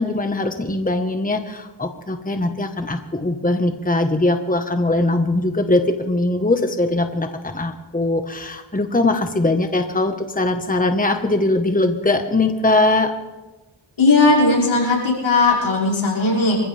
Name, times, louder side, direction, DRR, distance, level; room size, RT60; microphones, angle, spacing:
voice 1, 0.0-13.1, left 2 dB, 15° left, 6 dB, 1.4 m, -21 dB
voice 2, 14.0-16.6, left 3 dB, 80° left, -5 dB, 6.1 m, -17 dB
27.0 x 15.0 x 3.5 m, 1.1 s
cardioid pair, 50°, 47 cm